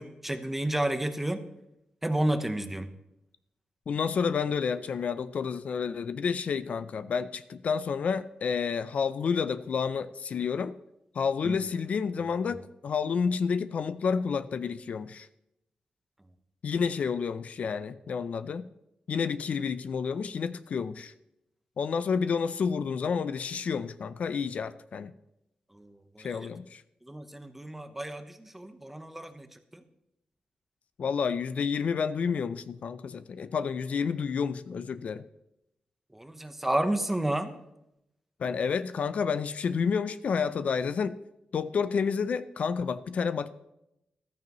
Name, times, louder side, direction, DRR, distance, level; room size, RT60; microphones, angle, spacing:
voice 1, 0.0-1.4 2.0-2.9 11.4-11.6 25.7-26.5 27.0-29.5 29.7-29.8 36.1-37.5, right 1 dB, 10° right, 8 dB, 0.9 m, -31 dB
voice 2, 3.9-10.8 11.1-15.3 16.6-18.7 19.1-21.1 21.8-25.1 26.2-26.8 31.0-35.2 38.4-41.1 41.5-43.5, left 6 dB, 60° left, 13 dB, 0.5 m, -30 dB
14.5 x 13.5 x 3.1 m, 0.84 s
wide cardioid pair, 150°, 3 cm